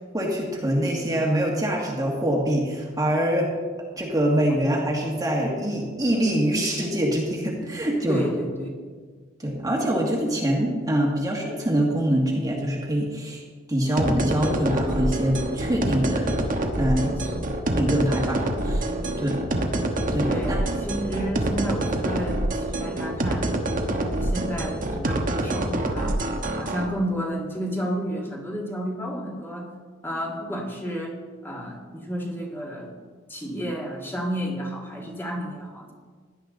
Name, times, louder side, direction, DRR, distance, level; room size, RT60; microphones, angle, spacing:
voice 1, 0.1-3.5 4.0-8.2 9.4-13.4 13.7-16.3 16.8-17.2 17.7-18.9 19.2-19.4 20.1-20.6, right 1 dB, 20° right, -2 dB, 1.8 m, -24 dB
voice 2, 8.1-8.7 17.0-17.5 19.0-19.5 20.2-23.5 24.0-26.2 26.6-29.7 30.0-31.2 31.4-32.9 33.3-35.9, equal, 10° left, -2 dB, 2.2 m, -31 dB
sound 1, 14.0-26.8, right 1 dB, 45° right, 1.3 m, -26 dB
17.0 x 11.0 x 3.9 m, 1.5 s
head